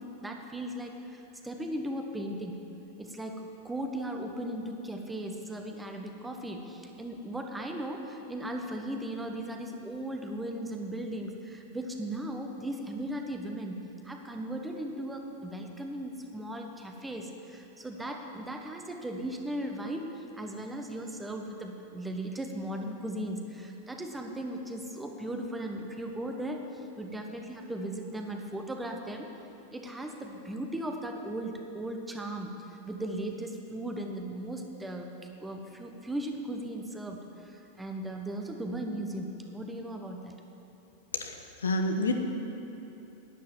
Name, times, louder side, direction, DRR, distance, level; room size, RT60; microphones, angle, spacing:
voice 1, 0.0-2.6 3.0-26.6 27.0-29.3 29.7-35.1 35.4-40.4, right 1 dB, 10° right, 3 dB, 1.2 m, -37 dB
voice 2, 41.6-42.1, left 2 dB, 70° left, 5 dB, 1.0 m, -27 dB
11.0 x 10.0 x 7.3 m, 2.9 s
figure-of-eight pair, 90°, 0 cm